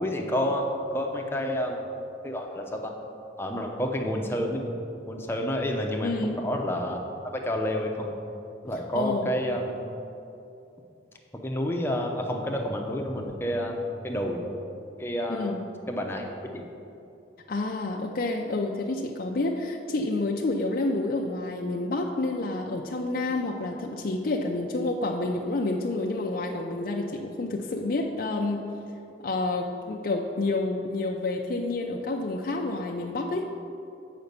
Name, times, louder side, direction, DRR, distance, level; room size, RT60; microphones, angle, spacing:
voice 1, 0.0-1.8 2.2-2.9 3.4-4.6 5.1-7.0 7.3-8.1 8.6-9.8 11.4-14.4 15.0-15.6 15.9-16.2 16.5-16.6, equal, 15° left, 1 dB, 0.7 m, -29 dB
voice 2, 6.0-6.4 8.7-9.3 15.3-15.6 17.5-28.6 29.2-33.4, left 2 dB, 50° left, 0 dB, 0.5 m, -29 dB
6.9 x 5.1 x 6.6 m, 2.7 s
head